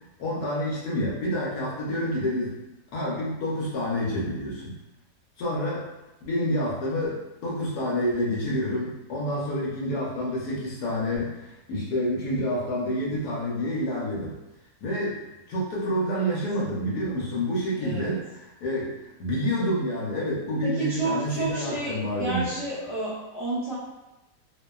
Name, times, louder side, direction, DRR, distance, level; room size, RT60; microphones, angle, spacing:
voice 1, 0.2-2.6 2.9-4.8 5.4-5.8 6.2-14.4 14.8-22.5, equal, 75° left, -5 dB, 1.2 m, -28 dB
voice 2, 17.8-18.1 20.6-23.7, right 2 dB, 45° right, -11 dB, 1.1 m, -31 dB
2.8 x 2.1 x 2.2 m, 1.0 s
omnidirectional pair, 1.8 m